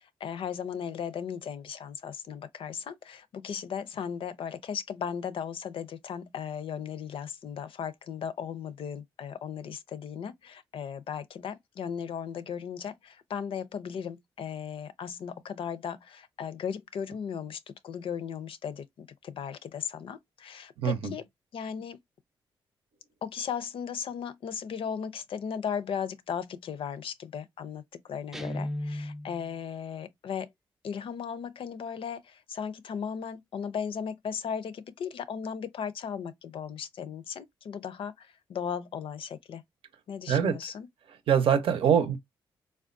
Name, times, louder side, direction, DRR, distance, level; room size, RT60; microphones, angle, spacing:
voice 1, 0.2-21.2 21.5-22.0 23.2-27.8 28.1-30.5 30.8-39.6 40.1-40.9, left 7 dB, 65° left, 0.5 m, -36 dB
voice 2, 20.8-21.1 40.3-40.6 41.3-42.2, right 8 dB, 70° right, 0.7 m, -23 dB
Guitar, 28.3-29.5, left 1 dB, 5° right, 0.4 m, -35 dB
3.5 x 2.2 x 2.5 m
supercardioid pair, 50°, 10 cm